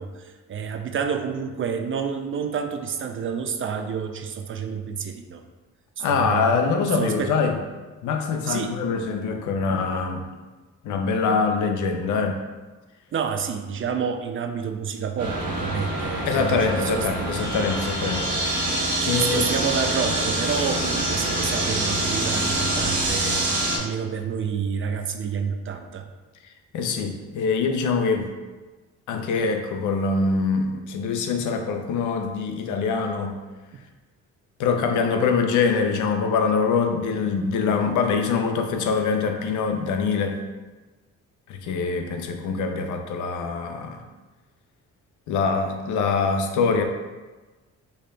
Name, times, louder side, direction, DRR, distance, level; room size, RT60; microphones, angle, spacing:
voice 1, 0.0-5.4 6.0-6.5 6.9-7.3 8.5-8.8 13.1-17.1 19.0-26.1 33.7-33.8, right 6 dB, 45° right, 7 dB, 0.5 m, -29 dB
voice 2, 6.0-7.6 8.0-10.3 10.8-12.4 16.3-18.4 19.1-19.5 26.7-28.3 29.1-33.4 34.6-40.4 41.5-44.0 45.3-46.8, left 5 dB, 75° left, 5 dB, 0.6 m, -24 dB
sound 1, 15.2-23.8, right 1 dB, 70° right, 1.3 m, -25 dB
5.1 x 4.6 x 2.3 m, 1.3 s
cardioid pair, 90°, 30 cm